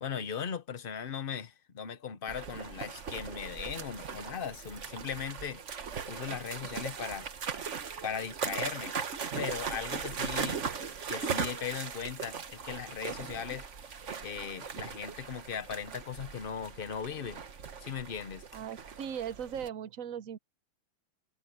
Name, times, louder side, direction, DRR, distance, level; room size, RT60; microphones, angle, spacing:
voice 1, 0.0-5.6 6.0-7.3 8.0-9.0 9.3-10.6 11.1-13.7 14.2-17.4 17.8-18.4, left 7 dB, 50° left, 0.6 m, -38 dB
sound 1, 2.3-19.7, right 6 dB, 40° right, 1.4 m, -39 dB
voice 2, 18.5-20.4, right 8 dB, 60° right, 0.9 m, -38 dB
omnidirectional pair, 2.2 m